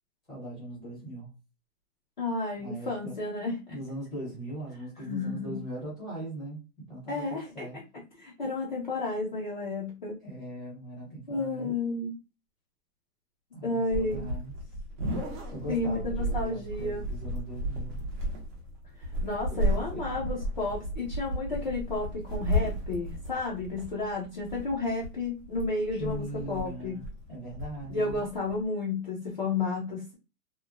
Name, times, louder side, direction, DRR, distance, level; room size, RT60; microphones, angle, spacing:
voice 1, 0.3-1.3 2.6-3.1 3.7-6.6 6.9-7.8 8.4-8.5 10.2-11.7 13.5-14.5 15.5-18.0 19.5-19.6 19.9-20.1 25.9-27.0 27.3-28.2, right 1 dB, ahead, 0.8 m, -40 dB
voice 2, 2.2-3.8 5.0-5.6 7.1-7.8 8.1-10.2 11.3-12.1 13.6-14.3 15.7-17.0 19.2-27.0 27.9-30.1, left 3 dB, 30° left, 0.4 m, -32 dB
sound 1, 13.9-28.6, equal, 30° right, 0.7 m, -34 dB
2.9 x 2.1 x 2.4 m
hypercardioid pair, 170°, 46 cm